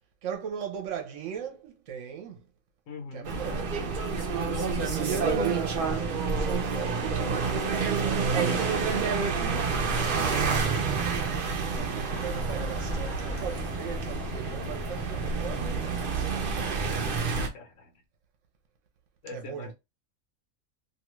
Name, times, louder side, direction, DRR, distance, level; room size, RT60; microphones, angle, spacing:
voice 1, 0.2-2.4 3.1-3.7 4.9-9.3 11.7-16.5 19.3-19.7, right 8 dB, 70° right, 1.0 m, -38 dB
voice 2, 2.9-3.3 10.1-10.6 16.9-17.3 17.5-17.9 19.2-19.7, left 3 dB, 80° left, 1.2 m, -42 dB
sound 1, 3.2-17.5, right 5 dB, 55° right, 0.6 m, -28 dB
sound 2, 12.1-17.3 17.7-17.8, left 2 dB, 60° left, 0.8 m, -41 dB
2.7 x 2.3 x 3.0 m
omnidirectional pair, 1.4 m